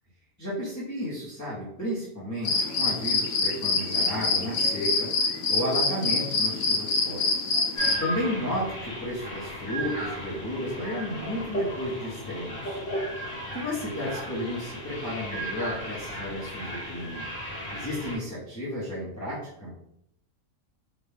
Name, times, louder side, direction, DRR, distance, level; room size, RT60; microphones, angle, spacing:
voice 1, 0.4-5.1 5.5-7.3 8.0-12.8 13.5-17.2 17.7-19.7, equal, 15° left, -9 dB, 0.7 m, -33 dB
sound 1, 2.4-7.9, left 4 dB, 75° left, 1.0 m, -25 dB
sound 2, 7.8-18.2, right 1 dB, 50° left, 1.3 m, -35 dB
3.8 x 2.2 x 3.4 m, 0.75 s
omnidirectional pair, 1.4 m